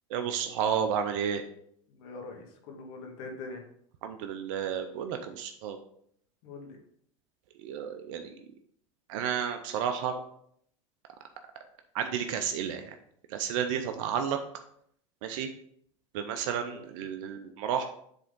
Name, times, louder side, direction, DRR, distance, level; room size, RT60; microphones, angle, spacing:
voice 1, 0.1-1.4 4.0-5.8 7.6-8.3 9.1-10.2 11.9-13.0 13.3-14.4 15.2-15.5 16.1-17.8, right 8 dB, 75° right, 6 dB, 0.6 m, -31 dB
voice 2, 1.9-3.6 6.4-6.8 16.7-16.8, left 3 dB, 65° left, 2 dB, 1.7 m, -43 dB
7.6 x 3.6 x 3.7 m, 0.66 s
hypercardioid pair, 95°, 17 cm